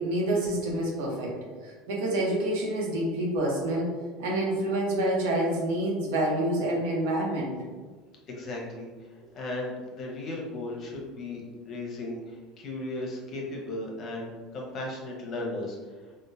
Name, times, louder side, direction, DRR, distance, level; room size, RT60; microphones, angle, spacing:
voice 1, 0.0-1.4 1.6-3.9 4.2-7.5, right 1 dB, 75° right, -3 dB, 0.9 m, -27 dB
voice 2, 8.3-9.1 9.3-15.8, left 2 dB, 45° left, -2 dB, 0.9 m, -36 dB
3.7 x 2.2 x 2.7 m, 1.4 s
hypercardioid pair, 90°, 0 cm